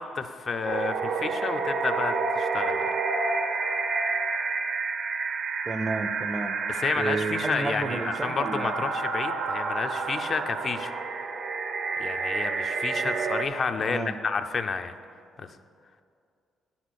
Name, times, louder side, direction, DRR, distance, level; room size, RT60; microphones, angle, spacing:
voice 1, 0.0-2.8 6.7-10.9 12.0-15.0 15.4-15.5, left 5 dB, 45° left, 8 dB, 0.5 m, -30 dB
sound 1, 0.6-13.5, right 4 dB, 65° right, 0.7 m, -29 dB
voice 2, 5.7-6.5 6.9-8.7 13.8-14.2, right 3 dB, 30° right, 10 dB, 0.5 m, -31 dB
9.7 x 4.2 x 6.3 m, 2.4 s
cardioid pair, 90°, 0 cm